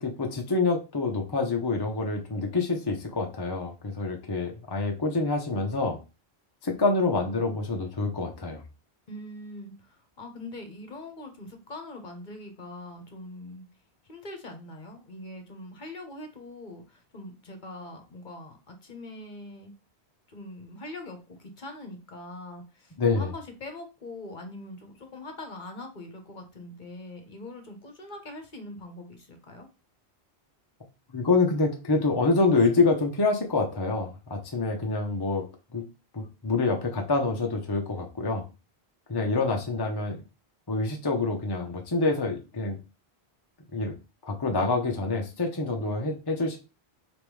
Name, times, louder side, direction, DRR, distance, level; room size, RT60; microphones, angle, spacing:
voice 1, 0.0-6.0 6.6-8.6 23.0-23.3 31.1-35.4 35.7-35.9 36.1-38.5 39.1-40.2 40.7-42.8 43.7-43.9 44.2-46.6, left 3 dB, 25° left, 2 dB, 0.7 m, -26 dB
voice 2, 9.1-13.7 14.1-19.7 20.3-29.7, left 2 dB, 50° left, 5 dB, 1.1 m, -42 dB
3.5 x 3.0 x 4.7 m, 0.29 s
omnidirectional pair, 1.1 m